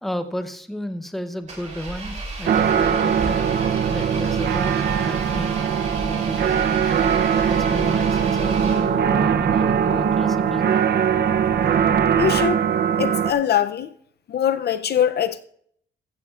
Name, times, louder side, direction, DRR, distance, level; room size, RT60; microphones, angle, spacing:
voice 1, 0.0-4.8 5.0-5.5 6.0-6.8 7.5-10.8, equal, ahead, 0.7 m, -33 dB
Engine, 1.4-9.2, right 2 dB, 35° right, 3.0 m, -33 dB
sound 1, 2.5-13.3, right 8 dB, 50° right, 0.6 m, -21 dB
sound 2, 8.6-11.5, left 1 dB, 15° left, 4.1 m, -40 dB
voice 2, 12.2-12.6 13.0-13.9 14.3-15.4, left 9 dB, 50° left, 0.5 m, -22 dB
14.5 x 14.5 x 2.4 m
wide cardioid pair, 165°, 21 cm